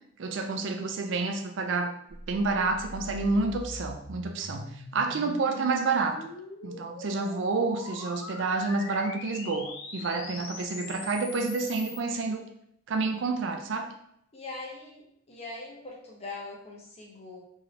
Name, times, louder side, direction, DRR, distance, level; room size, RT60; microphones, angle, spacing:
voice 1, 0.2-2.0 2.3-6.2 6.6-12.5 12.9-13.9, right 3 dB, 65° right, 5 dB, 0.4 m, -29 dB
sound 1, 2.1-12.0, left 2 dB, 70° left, 0.5 m, -42 dB
voice 2, 14.3-17.4, left 3 dB, 30° left, -2 dB, 0.7 m, -42 dB
3.0 x 2.8 x 2.5 m, 0.71 s
head